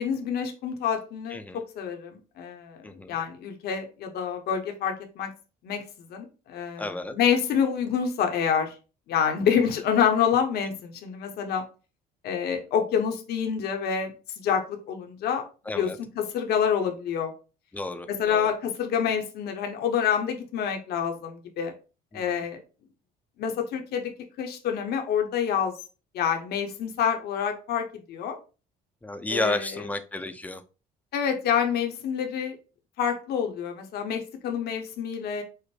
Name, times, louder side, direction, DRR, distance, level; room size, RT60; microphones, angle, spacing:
voice 1, 0.0-2.8 3.1-5.3 5.6-5.8 6.1-8.7 9.1-11.6 12.2-15.4 15.7-17.3 18.1-21.7 22.1-22.6 23.4-24.1 24.4-25.7 26.1-28.4 29.3-29.9 31.1-32.6 33.0-35.4, left 7 dB, 70° left, 4 dB, 1.0 m, -27 dB
voice 2, 2.8-3.2 6.8-7.1 15.7-16.0 17.7-18.5 22.1-22.4 29.0-30.6, left 2 dB, 10° left, 9 dB, 0.5 m, -32 dB
5.0 x 2.1 x 4.3 m, 0.33 s
cardioid pair, 110°, 17 cm